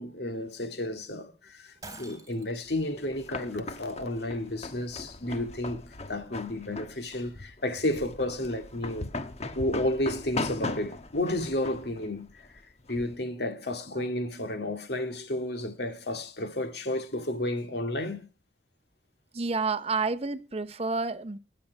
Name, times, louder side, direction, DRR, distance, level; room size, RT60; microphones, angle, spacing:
voice 1, 0.0-9.1 9.5-12.3 12.9-18.3, left 1 dB, 65° left, 2.2 m, -32 dB
Shatter, 1.8-2.7, right 2 dB, 20° right, 3.5 m, -45 dB
sound 1, 2.7-13.2, left 2 dB, 35° left, 1.2 m, -38 dB
voice 2, 19.3-21.4, right 4 dB, 35° right, 0.7 m, -30 dB
20.5 x 7.7 x 4.6 m
head